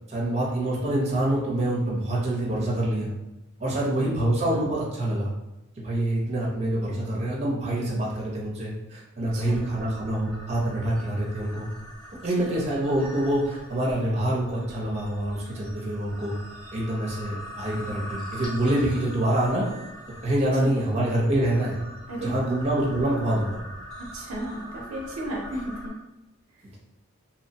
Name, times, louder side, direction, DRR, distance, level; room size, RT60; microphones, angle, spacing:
voice 1, 0.1-3.1 3.6-5.3 5.8-11.7 12.2-16.3 16.7-19.7 20.2-21.8 22.2-23.6, right 1 dB, 30° right, -4 dB, 0.6 m, -26 dB
voice 2, 3.6-4.1 9.3-9.7 12.2-12.5 22.1-22.6 24.0-26.0 26.5-26.7, right 1 dB, 75° right, 0 dB, 0.5 m, -34 dB
sound 1, 9.2-25.9, equal, 5° left, 0.8 m, -43 dB
2.9 x 2.1 x 2.7 m, 0.95 s
head